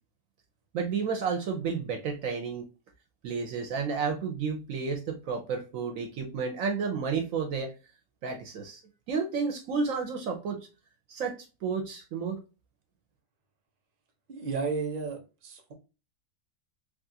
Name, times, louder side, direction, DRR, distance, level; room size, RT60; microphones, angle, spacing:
voice 1, 0.7-2.7 3.2-7.7 8.2-8.8 9.1-10.7 11.1-12.4, right 5 dB, 70° right, 0.9 m, -31 dB
voice 2, 14.3-15.7, right 4 dB, 45° right, 0.8 m, -33 dB
3.2 x 2.4 x 2.6 m
omnidirectional pair, 1.5 m